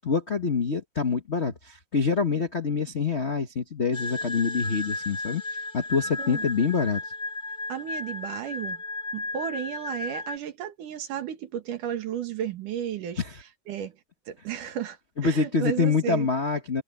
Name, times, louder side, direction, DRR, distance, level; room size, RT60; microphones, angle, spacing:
voice 1, 0.0-5.4 5.7-7.0 13.2-13.3 15.2-16.8, left 5 dB, 70° left, 0.6 m, -26 dB
sound 1, 3.9-10.4, left 2 dB, 20° left, 2.8 m, -34 dB
voice 2, 7.7-8.8 9.1-13.2 13.7-13.9 14.3-15.0 15.2-16.3, right 9 dB, 85° right, 3.3 m, -33 dB
omnidirectional pair, 3.6 m